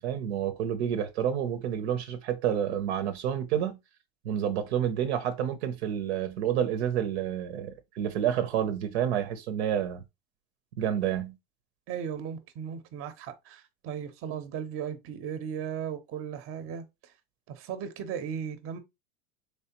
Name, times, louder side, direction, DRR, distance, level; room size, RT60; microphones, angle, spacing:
voice 1, 0.0-3.8 4.2-10.0 10.8-11.3, right 9 dB, 90° right, 0.7 m, -29 dB
voice 2, 11.9-17.1 17.5-18.8, right 8 dB, 45° right, 0.7 m, -36 dB
3.4 x 3.2 x 2.9 m
supercardioid pair, 110°, 31 cm